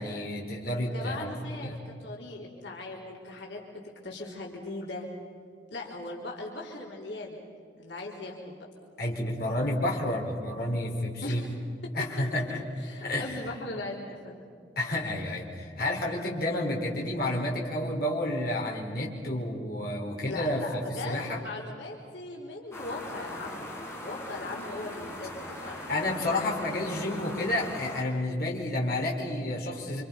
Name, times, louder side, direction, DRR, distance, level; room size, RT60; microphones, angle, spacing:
voice 1, 0.0-1.8 9.0-11.4 11.9-12.6 13.0-13.4 14.8-20.6 21.0-21.4 25.9-30.0, left 1 dB, 60° left, -2 dB, 4.9 m, -30 dB
voice 2, 0.9-3.6 4.0-5.1 5.7-7.4 7.7-8.6 11.2-11.5 11.8-11.9 12.8-14.5 20.3-23.7 24.0-26.0, left 2 dB, 85° left, -2 dB, 4.1 m, -39 dB
sound 1, 22.7-28.0, left 1 dB, 15° left, 4.2 m, -40 dB
29.5 x 27.0 x 5.5 m, 2.4 s
head